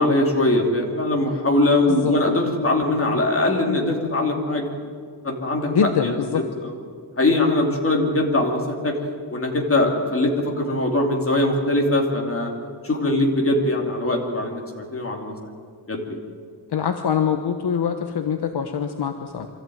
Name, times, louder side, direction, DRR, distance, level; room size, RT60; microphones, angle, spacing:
voice 1, 0.0-4.7 5.2-6.1 6.6-6.7 7.2-9.0 9.3-12.5 12.8-15.3 15.9-16.2, left 2 dB, 30° left, 1 dB, 2.9 m, -21 dB
voice 2, 5.7-6.4 16.7-19.5, left 7 dB, 60° left, 6 dB, 1.1 m, -24 dB
24.5 x 14.5 x 9.4 m, 2.1 s
wide cardioid pair, 180°, 44 cm